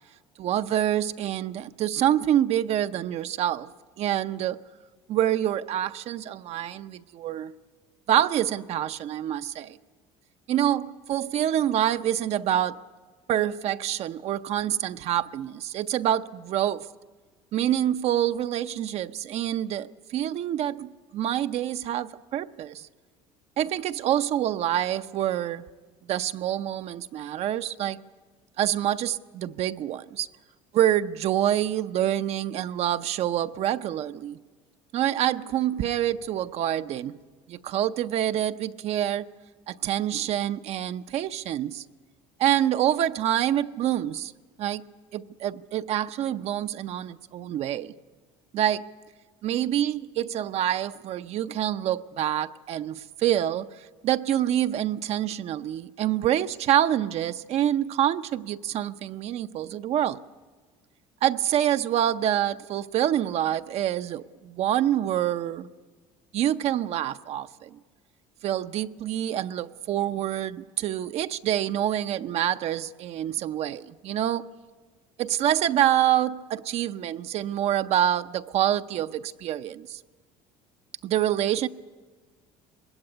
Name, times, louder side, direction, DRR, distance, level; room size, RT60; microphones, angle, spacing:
voice 1, 0.4-3.7 4.0-4.6 5.1-7.5 8.1-9.8 10.5-12.8 13.3-16.9 17.5-22.9 23.6-25.6 26.1-28.0 28.6-30.3 30.7-34.4 34.9-37.2 37.5-39.3 39.7-41.8 42.4-44.3 44.6-44.8 45.1-47.9 48.5-48.9 49.4-53.7 54.0-60.2 61.2-65.7 66.3-67.7 68.4-74.5 75.2-80.0 81.0-81.7, right 11 dB, 55° right, 0.6 m, -26 dB
20.5 x 17.0 x 9.8 m
supercardioid pair, 105°, 13 cm